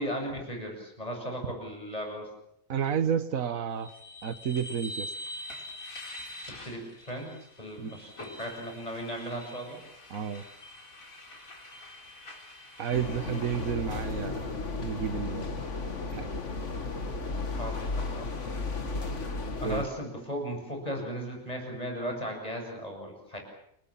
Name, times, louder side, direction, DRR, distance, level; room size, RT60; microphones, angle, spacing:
voice 1, 0.0-2.3 6.6-7.3 7.6-9.8 17.5-18.3 19.6-23.4, equal, 25° left, 2 dB, 7.6 m, -36 dB
voice 2, 2.7-3.9 4.2-5.1 7.8-8.0 10.1-10.4 12.8-14.5 14.8-15.6 16.0-16.3 19.6-19.8, right 8 dB, 80° right, 11 dB, 1.6 m, -31 dB
sound 1, 3.8-13.7, left 1 dB, 75° left, 4.8 m, -45 dB
sound 2, 12.9-19.8, left 3 dB, 60° left, 2.3 m, -34 dB
30.0 x 19.5 x 7.3 m, 0.72 s
omnidirectional pair, 1.4 m